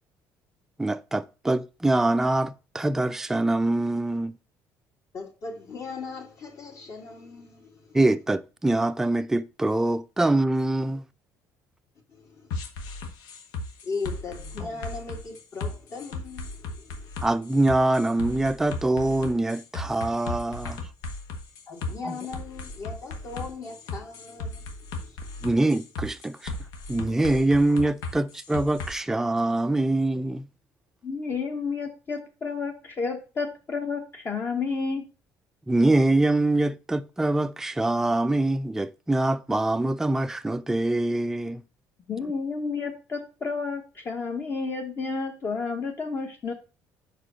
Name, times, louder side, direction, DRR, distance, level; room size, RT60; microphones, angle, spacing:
voice 1, 0.8-4.3 7.9-11.0 17.2-20.8 22.0-22.1 25.4-26.5 26.9-30.5 35.7-41.6, right 2 dB, 5° right, 0.4 m, -24 dB
voice 2, 5.1-8.0 12.1-12.6 13.8-17.1 21.7-25.5, left 4 dB, 50° left, 2.5 m, -38 dB
sound 1, 12.5-28.9, left 3 dB, 90° left, 1.4 m, -36 dB
voice 3, 31.0-35.0 42.1-46.5, left 4 dB, 30° left, 1.0 m, -31 dB
5.5 x 4.8 x 6.2 m
cardioid pair, 120°, 7 cm